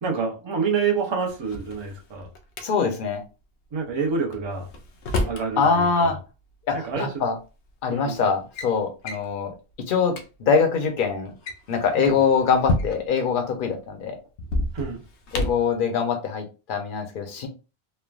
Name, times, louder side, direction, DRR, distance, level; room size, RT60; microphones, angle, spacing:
voice 1, 0.0-2.3 3.7-4.7 5.3-6.1 6.8-7.1 7.9-8.2 12.0-12.2 14.7-15.0, right 5 dB, 30° right, 1 dB, 0.5 m, -27 dB
Drawer open or close, 1.3-2.7 4.3-5.5 6.8-6.9 7.7-8.0 8.3-8.7 9.1-9.3 9.8-9.9 10.1-10.3 11.3-13.2 14.4-15.7, left 2 dB, 85° left, 0.9 m, -29 dB
voice 2, 2.6-3.2 5.6-6.2 6.7-7.4 7.8-9.5 9.9-11.3 11.7-14.2 15.3-17.5, left 5 dB, 55° left, 5 dB, 0.7 m, -23 dB
3.2 x 2.2 x 2.3 m, 0.31 s
omnidirectional pair, 1.1 m